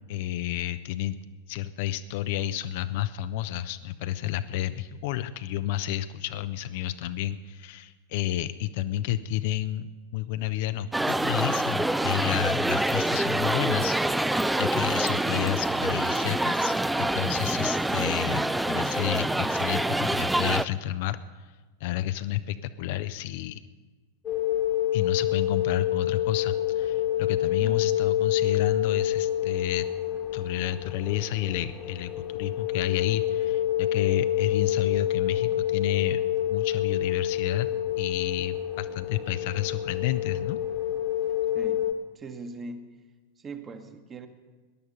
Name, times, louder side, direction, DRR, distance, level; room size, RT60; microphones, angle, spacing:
voice 1, 0.1-1.2 1.5-21.5 21.8-23.6 24.9-29.9 30.3-36.2 36.5-37.7 38.0-40.6, left 13 dB, 50° left, 12 dB, 0.5 m, -31 dB
sound 1, 10.9-20.6, right 1 dB, 5° right, 0.4 m, -26 dB
sound 2, 24.2-41.9, left 12 dB, 30° left, 1.3 m, -27 dB
voice 2, 41.5-43.0 43.4-44.3, right 3 dB, 25° right, 7 dB, 1.2 m, -41 dB
18.0 x 10.5 x 5.6 m, 1.3 s
figure-of-eight pair, 90°, 0 cm